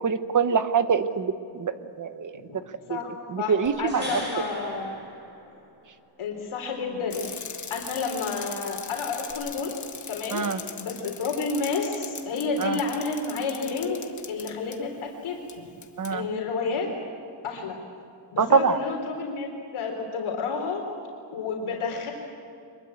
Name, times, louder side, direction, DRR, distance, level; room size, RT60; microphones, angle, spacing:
voice 1, 0.0-2.3 2.9-3.0 3.3-4.0 10.3-10.6 12.6-12.8 16.0-16.3 18.4-18.8, right 5 dB, 40° right, 11 dB, 1.1 m, -24 dB
voice 2, 3.4-5.0 6.2-7.3 7.7-9.7 10.1-10.5 10.8-14.0 14.3-15.4 16.1-16.9 17.4-17.8 18.3-20.8 21.3-22.1, left 4 dB, 80° left, 1 dB, 3.7 m, -30 dB
sound 1, 3.7-5.9 9.3-9.4, equal, 20° right, 5.4 m, -39 dB
Bicycle, 7.1-14.8 15.5-15.6 15.8-16.1, left 6 dB, 35° left, 1.4 m, -40 dB
24.5 x 22.0 x 8.6 m, 2.5 s
wide cardioid pair, 175°, 48 cm